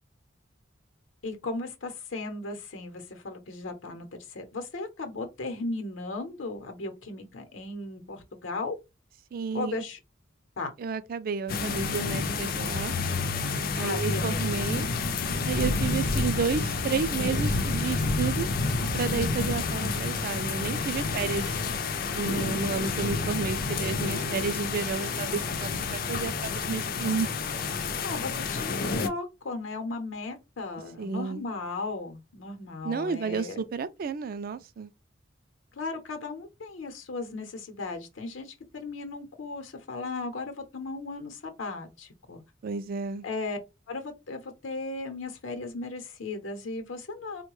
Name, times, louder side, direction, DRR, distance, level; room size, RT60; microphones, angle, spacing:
voice 1, 1.2-8.8 9.5-10.0 10.6-10.7 13.8-14.7 28.0-33.6 35.7-42.4 43.2-43.6 43.9-47.4, left 3 dB, 85° left, 0.8 m, -36 dB
voice 2, 9.3-9.9 10.8-12.9 13.7-14.9 15.4-18.5 18.9-21.5 22.1-27.3 31.0-31.4 32.8-34.9 42.6-43.3, right 5 dB, 50° right, 0.3 m, -31 dB
sound 1, 11.5-29.1, left 4 dB, 50° left, 0.4 m, -29 dB
3.7 x 2.1 x 3.0 m
head